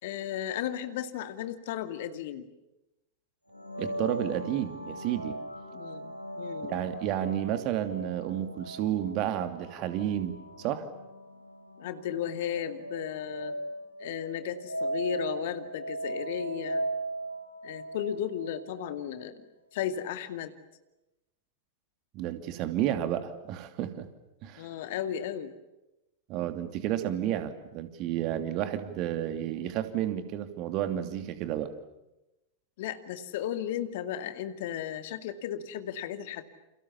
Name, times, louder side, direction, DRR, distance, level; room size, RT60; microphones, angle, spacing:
voice 1, 0.0-2.5 5.7-6.8 11.8-13.6 14.0-16.8 17.6-19.4 19.7-20.5 24.6-25.5 32.8-36.4, left 10 dB, 55° left, 10 dB, 2.2 m, -35 dB
sound 1, 3.5-19.1, right 1 dB, 90° right, 3.7 m, -38 dB
voice 2, 3.8-5.4 6.6-10.9 22.1-24.1 24.4-24.7 26.3-31.7, right 11 dB, 40° right, 9 dB, 2.6 m, -31 dB
29.0 x 29.0 x 7.2 m, 0.95 s
figure-of-eight pair, 90°, 0 cm